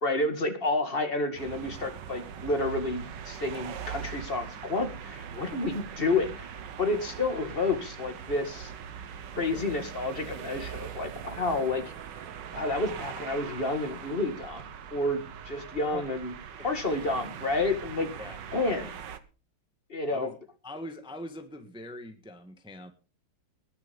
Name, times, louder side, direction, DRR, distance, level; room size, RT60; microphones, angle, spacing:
voice 1, 0.0-8.7 9.4-11.8 12.5-15.2 15.4-16.3 16.6-18.1 18.5-18.9 19.9-20.3, left 2 dB, 25° left, 7 dB, 2.3 m, -30 dB
sound 1, 1.4-19.2, right 8 dB, 60° right, 1.7 m, -41 dB
voice 2, 20.6-22.9, left 1 dB, 5° right, 7 dB, 1.4 m, -42 dB
20.5 x 7.0 x 5.4 m, 0.34 s
omnidirectional pair, 2.3 m